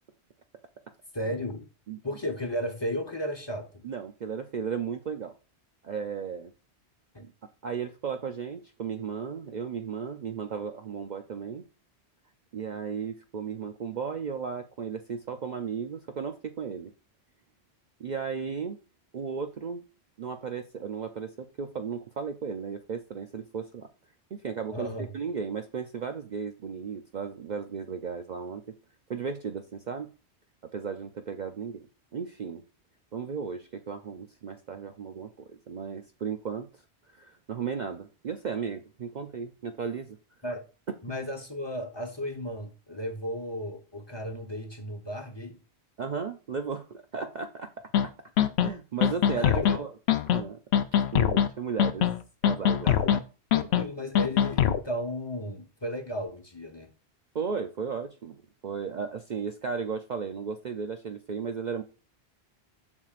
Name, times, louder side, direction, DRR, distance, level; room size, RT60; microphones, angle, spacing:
voice 1, 1.1-1.7 2.0-3.7 7.1-7.2 24.7-25.1 40.4-40.6 41.0-45.6 49.4-49.8 52.8-53.2 53.5-56.9, equal, 25° left, 1.0 m, -34 dB
voice 2, 3.8-5.3 5.8-6.5 7.6-11.6 12.5-16.9 18.0-18.8 19.1-19.8 20.2-23.9 24.3-28.6 29.1-30.1 30.7-31.9 32.1-32.6 33.1-36.8 37.1-40.2 46.0-47.7 48.6-49.9 50.3-50.6 51.1-52.1 52.4-53.0 57.3-61.8, right 6 dB, 50° right, 0.6 m, -35 dB
sound 1, 47.9-48.0 48.4-48.7 49.0-49.8 50.1-50.4 50.7-51.5 51.8-52.2 52.4-53.2 53.5-53.8 54.1-54.8, left 10 dB, 75° left, 0.8 m, -22 dB
7.2 x 6.3 x 2.5 m
omnidirectional pair, 1.1 m